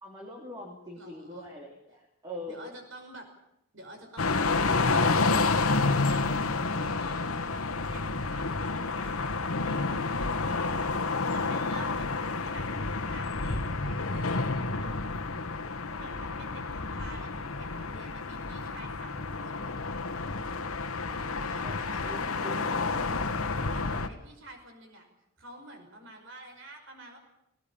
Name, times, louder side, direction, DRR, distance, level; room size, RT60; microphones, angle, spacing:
voice 1, 0.0-2.7 21.6-23.3, left 1 dB, 20° right, -1 dB, 3.1 m, -43 dB
voice 2, 0.9-1.5 2.5-3.3 3.7-12.7 13.1-14.9 15.9-19.8 21.1-22.2 23.7-25.0 25.4-27.2, right 1 dB, 60° right, 4 dB, 5.6 m, -48 dB
sound 1, 4.2-24.1, left 3 dB, 75° left, 1.5 m, -29 dB
19.0 x 18.5 x 8.9 m, 0.80 s
head